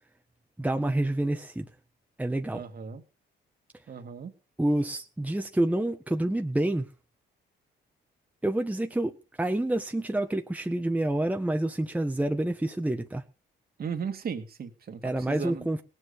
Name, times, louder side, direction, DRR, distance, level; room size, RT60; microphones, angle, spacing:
voice 1, 0.6-1.7 2.2-2.6 4.6-6.9 8.4-13.2 15.0-15.8, right 1 dB, 5° right, 1.3 m, -28 dB
voice 2, 2.5-3.0 3.9-4.3 13.8-15.7, right 6 dB, 50° right, 2.4 m, -36 dB
18.5 x 7.7 x 6.7 m
cardioid pair, 90°, 20 cm